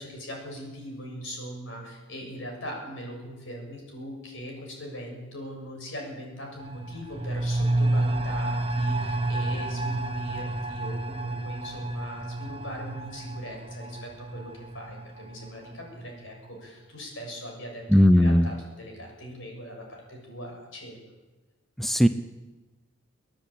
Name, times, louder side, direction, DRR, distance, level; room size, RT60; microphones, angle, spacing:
voice 1, 0.0-17.8 18.1-21.0, equal, 70° left, 1 dB, 7.0 m, -40 dB
sound 1, 6.6-16.0 16.3-16.4, right 2 dB, 30° right, 1.8 m, -30 dB
voice 2, 17.9-18.5 21.8-22.1, equal, ahead, 10 dB, 0.6 m, -18 dB
30.0 x 10.5 x 8.7 m, 1.2 s
head